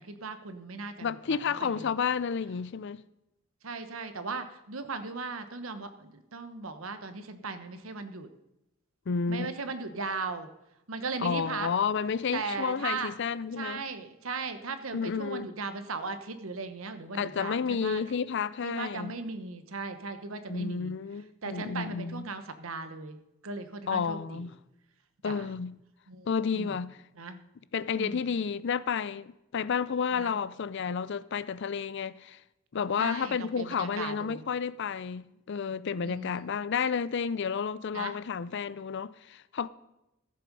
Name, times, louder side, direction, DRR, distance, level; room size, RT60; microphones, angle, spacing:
voice 1, 0.0-1.9 3.6-8.3 9.3-10.5 10.9-11.7 12.3-13.1 13.6-18.0 18.6-20.9 21.4-23.2 23.4-24.5 25.2-25.5 26.1-26.3 26.5-26.8 27.1-27.4 28.0-28.4 30.1-30.3 33.0-34.5 36.0-36.5 37.9-38.2, right 4 dB, 85° right, 1.1 m, -37 dB
voice 2, 1.0-3.0 9.1-9.5 11.2-13.8 14.9-15.5 17.1-19.2 20.5-22.3 23.9-24.5 25.2-25.8 26.3-26.9 27.7-32.4 32.7-39.7, left 6 dB, 60° left, 0.5 m, -31 dB
14.0 x 7.8 x 5.3 m
head